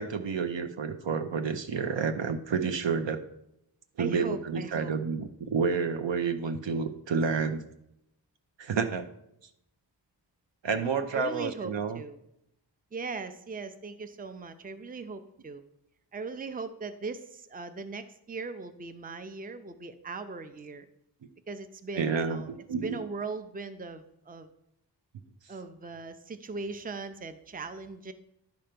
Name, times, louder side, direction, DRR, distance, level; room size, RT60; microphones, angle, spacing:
voice 1, 0.0-3.2 4.0-7.6 8.6-9.1 10.6-12.0 22.0-22.4 22.7-23.0, right 5 dB, 85° right, 8 dB, 0.8 m, -29 dB
voice 2, 4.0-4.9 11.1-12.2 12.9-15.6 16.1-20.9 21.5-22.5 22.8-24.5 25.5-28.1, right 4 dB, 20° right, 10 dB, 0.5 m, -39 dB
10.5 x 4.5 x 5.1 m, 0.80 s
wide cardioid pair, 100°, 43 cm